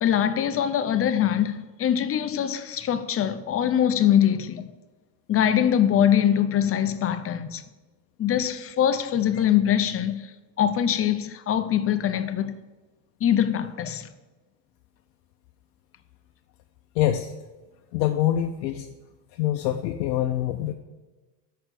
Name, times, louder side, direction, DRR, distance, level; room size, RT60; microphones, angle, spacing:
voice 1, 0.0-4.7 5.3-7.6 8.2-10.2 10.6-12.5 13.2-14.1, left 10 dB, 30° left, 0.5 m, -23 dB
voice 2, 17.0-17.3 17.9-18.9 19.3-20.7, left 12 dB, 75° left, 0.6 m, -25 dB
6.2 x 4.4 x 6.5 m
hypercardioid pair, 85°, 49 cm